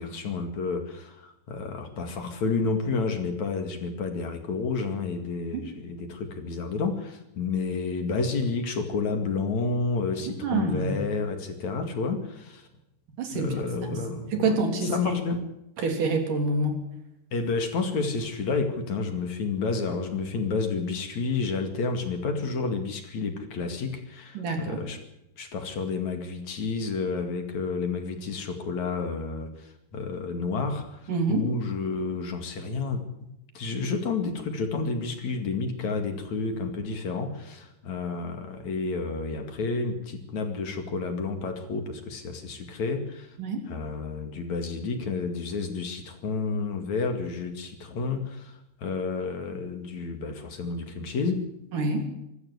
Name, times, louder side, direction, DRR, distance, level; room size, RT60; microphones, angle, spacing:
voice 1, 0.0-12.7 13.3-14.6 14.8-15.4 17.3-25.0 25.4-33.0 33.5-43.3 43.7-51.4, left 4 dB, 50° left, 6 dB, 3.2 m, -30 dB
voice 2, 10.2-10.9 13.2-13.6 13.9-14.0 14.3-14.9 15.8-16.8 24.3-24.8 31.1-31.5 43.4-43.6 51.7-52.1, right 3 dB, 55° right, 4 dB, 4.6 m, -27 dB
25.0 x 13.0 x 8.2 m, 0.86 s
omnidirectional pair, 4.6 m